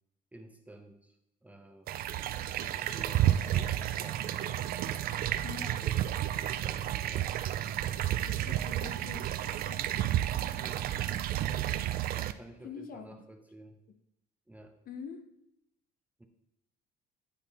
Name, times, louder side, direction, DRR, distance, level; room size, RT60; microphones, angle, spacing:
voice 1, 0.3-1.2 1.4-1.9 2.5-4.3 5.8-7.4 7.8-8.3 10.6-10.9 12.1-13.8 14.5-14.7 16.2-16.3, right 1 dB, 10° right, 5 dB, 0.6 m, -52 dB
sound 1, 1.9-12.3, right 12 dB, 55° right, 0.4 m, -31 dB
sound 2, 2.8-6.1, left 2 dB, 25° left, 1.5 m, -54 dB
voice 2, 5.4-5.8 8.2-9.9 12.6-13.3 14.9-15.2, left 6 dB, 50° left, 8 dB, 0.8 m, -45 dB
10.0 x 3.6 x 4.2 m, 0.82 s
cardioid pair, 125°, 19 cm